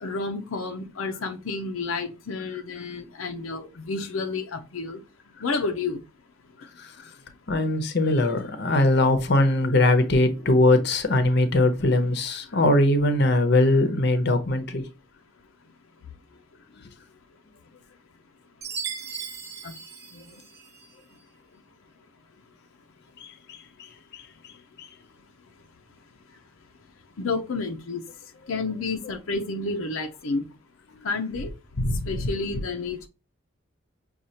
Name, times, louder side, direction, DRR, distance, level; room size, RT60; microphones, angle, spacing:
voice 1, 0.0-5.0 5.4-6.0 19.6-19.7 27.2-28.0 28.5-30.4 31.0-31.5 32.1-33.1, left 3 dB, 85° left, 0.6 m, -30 dB
voice 2, 6.8-7.1 7.5-14.9 23.2-23.6 24.1-24.2 24.8-24.9 31.8-32.1, left 2 dB, 55° left, 0.8 m, -21 dB
Chime, 18.6-20.9, right 6 dB, 50° right, 0.8 m, -37 dB
6.3 x 2.4 x 2.8 m
head